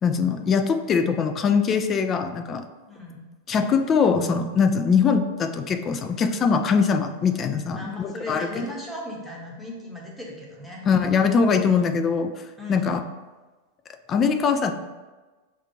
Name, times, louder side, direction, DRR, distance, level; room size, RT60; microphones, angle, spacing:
voice 1, 0.0-2.7 3.5-8.6 10.9-12.3 12.7-13.0 14.1-14.7, left 5 dB, 25° left, 8 dB, 0.3 m, -22 dB
voice 2, 2.9-3.3 7.7-10.8 11.7-11.9 12.6-13.0, left 1 dB, ahead, -3 dB, 1.0 m, -37 dB
6.0 x 2.5 x 2.9 m, 1.2 s
figure-of-eight pair, 90°, 0 cm